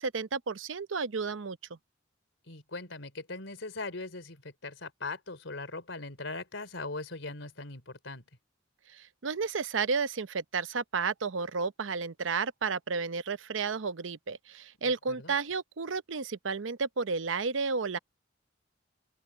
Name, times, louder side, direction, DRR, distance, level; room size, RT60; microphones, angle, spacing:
voice 1, 0.0-1.8 8.9-18.0, right 5 dB, 90° right, 0.8 m, -32 dB
voice 2, 2.4-8.2 14.8-15.3, left 3 dB, 80° left, 4.0 m, -40 dB
open air
head